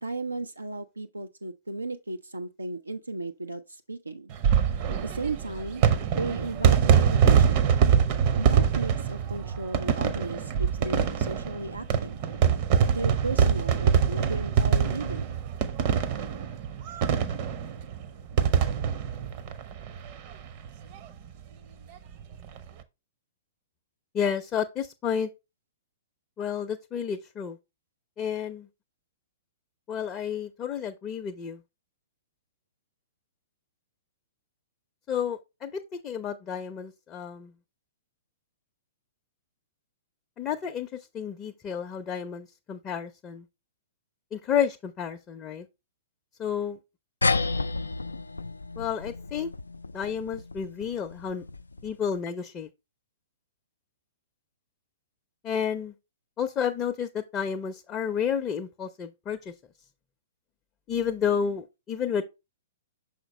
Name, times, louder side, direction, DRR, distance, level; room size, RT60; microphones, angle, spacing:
voice 1, 0.0-4.3 5.0-5.8 6.1-7.7 8.4-12.2 12.9-15.4, right 2 dB, 80° right, 0.4 m, -35 dB
sound 1, 4.3-20.3 20.6-20.7 20.9-21.0 22.3-22.6, right 7 dB, 40° right, 0.7 m, -24 dB
voice 2, 24.1-25.3 26.4-27.6 28.2-28.7 29.9-31.6 35.1-37.5 40.4-43.4 44.3-45.7 46.4-46.8 48.8-49.5 49.9-51.4 51.8-52.7 55.4-55.9 56.4-59.5 60.9-62.2, left 7 dB, 25° left, 0.5 m, -31 dB
sound 2, 47.2-52.1, left 3 dB, 80° left, 0.3 m, -32 dB
6.2 x 5.0 x 3.1 m
figure-of-eight pair, 110°, 0 cm